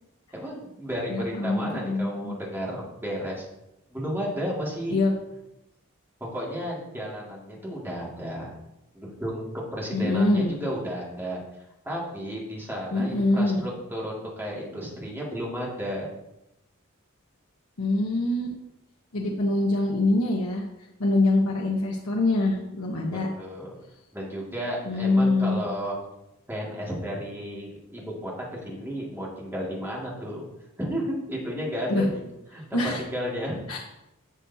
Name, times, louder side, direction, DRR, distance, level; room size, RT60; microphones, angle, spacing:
voice 1, 0.3-3.5 3.9-5.0 6.3-8.5 8.9-9.5 9.7-11.4 11.8-16.1 23.4-23.7 24.1-26.0 26.5-30.5 30.8-32.2 32.5-33.6, equal, 10° right, -4 dB, 2.2 m, -33 dB
voice 2, 1.1-2.3 4.9-5.1 9.9-10.5 12.9-13.6 17.8-18.5 19.1-20.6 21.0-23.3 24.8-25.6 31.9-32.1 32.5-33.0 33.7-33.8, left 2 dB, 80° left, -1 dB, 1.1 m, -24 dB
11.0 x 7.0 x 2.8 m, 0.90 s
head